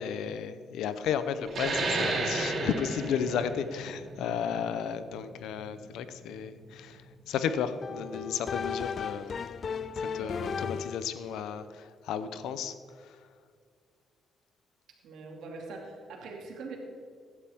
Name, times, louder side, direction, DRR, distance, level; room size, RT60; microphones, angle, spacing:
voice 1, 0.0-9.3 10.0-12.7 13.0-13.2, left 8 dB, 85° left, 11 dB, 0.8 m, -33 dB
sound 1, 1.5-6.6, right 3 dB, 55° right, 3.2 m, -33 dB
sound 2, 7.8-11.2, left 6 dB, 50° left, 0.4 m, -35 dB
voice 2, 15.0-16.8, right 4 dB, 75° right, 0 dB, 2.7 m, -43 dB
16.5 x 11.5 x 3.7 m, 2.1 s
cardioid pair, 90°, 0 cm